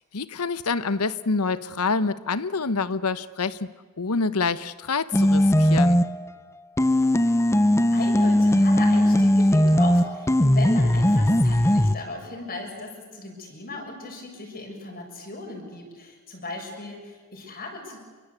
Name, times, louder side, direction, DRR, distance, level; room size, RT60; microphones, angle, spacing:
voice 1, 0.1-3.7 4.0-6.0, left 4 dB, 90° left, 14 dB, 1.0 m, -27 dB
sound 1, 5.1-6.3 6.8-12.0, left 1 dB, 15° left, 0.8 m, -19 dB
voice 2, 7.7-18.0, left 2 dB, 45° left, 1 dB, 6.8 m, -37 dB
27.5 x 25.0 x 8.4 m, 1.4 s
head